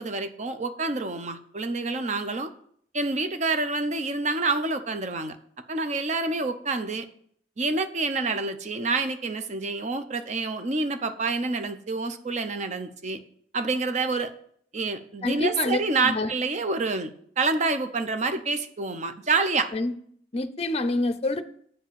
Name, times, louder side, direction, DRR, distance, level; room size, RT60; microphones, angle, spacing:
voice 1, 0.0-2.5 2.9-5.4 5.7-7.1 7.6-13.2 13.5-14.3 14.7-17.1 17.4-19.7, right 3 dB, 40° right, 0.6 m, -27 dB
voice 2, 15.2-15.8 16.0-16.3 19.7-19.9 20.3-21.4, left 2 dB, 35° left, 0.6 m, -26 dB
8.4 x 5.0 x 6.8 m
head